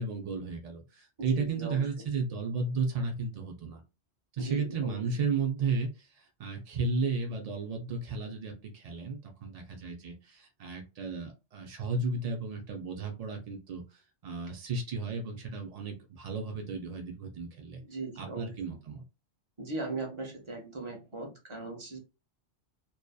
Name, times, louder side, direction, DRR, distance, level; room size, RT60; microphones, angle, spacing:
voice 1, 0.0-3.8 4.3-13.8 14.2-17.8 18.2-19.0, right 4 dB, 75° right, 2 dB, 0.3 m, -34 dB
voice 2, 1.2-1.9 4.4-5.0 17.8-18.7 19.6-22.0, right 3 dB, 30° right, 1 dB, 0.8 m, -39 dB
2.6 x 2.2 x 2.2 m, 0.28 s
omnidirectional pair, 1.2 m